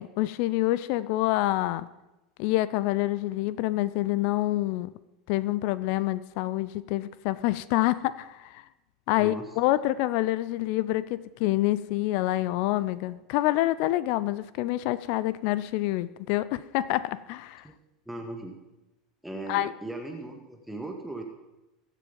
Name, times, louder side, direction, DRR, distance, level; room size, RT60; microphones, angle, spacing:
voice 1, 0.0-1.9 2.4-4.9 5.3-8.6 9.1-17.7 19.5-19.7, left 16 dB, 55° left, 17 dB, 0.5 m, -27 dB
voice 2, 9.2-9.5 17.6-17.7 18.0-18.6 19.2-21.2, right 2 dB, 5° right, 3 dB, 1.8 m, -38 dB
22.0 x 7.4 x 5.3 m, 1.0 s
figure-of-eight pair, 80°, 3 cm